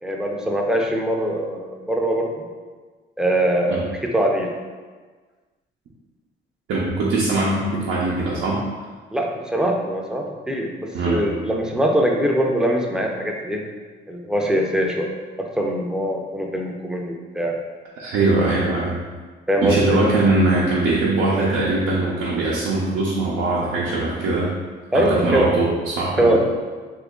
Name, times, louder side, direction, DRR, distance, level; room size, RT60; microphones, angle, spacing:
voice 1, 0.0-2.3 3.2-4.5 9.1-13.6 14.1-15.1 15.4-17.6 19.5-20.0 24.9-25.5 26.2-26.4, right 1 dB, 5° right, 0 dB, 0.4 m, -22 dB
voice 2, 6.7-8.6 10.9-11.2 18.0-19.0 19.6-24.5 24.9-26.4, right 2 dB, 90° right, -6 dB, 0.6 m, -21 dB
2.9 x 2.4 x 3.6 m, 1.4 s
cardioid pair, 90°, 20 cm